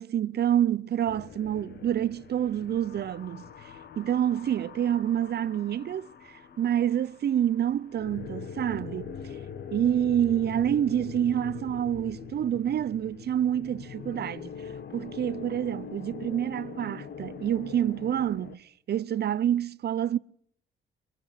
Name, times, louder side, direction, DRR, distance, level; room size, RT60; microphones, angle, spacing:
voice 1, 0.0-3.7 4.0-6.1 6.6-9.2 9.7-14.5 14.9-20.2, right 10 dB, 55° right, 0.8 m, -27 dB
sound 1, 1.1-18.6, left 7 dB, 60° left, 1.8 m, -43 dB
23.0 x 20.5 x 5.7 m
cardioid pair, 90°, 20 cm